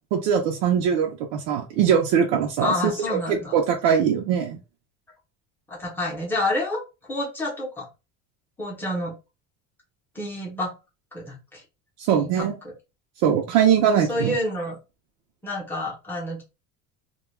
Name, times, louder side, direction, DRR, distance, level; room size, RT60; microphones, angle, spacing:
voice 1, 0.1-2.9 3.3-4.6 12.0-12.5 13.2-14.3, right 8 dB, 80° right, 1 dB, 0.6 m, -21 dB
voice 2, 2.6-3.6 3.9-4.0 5.7-7.9 8.6-9.1 10.1-10.7 11.1-11.6 12.1-12.7 14.1-14.8 15.4-16.4, left 1 dB, 5° left, -4 dB, 0.7 m, -29 dB
2.2 x 2.2 x 3.1 m, 0.28 s
cardioid pair, 180°, 33 cm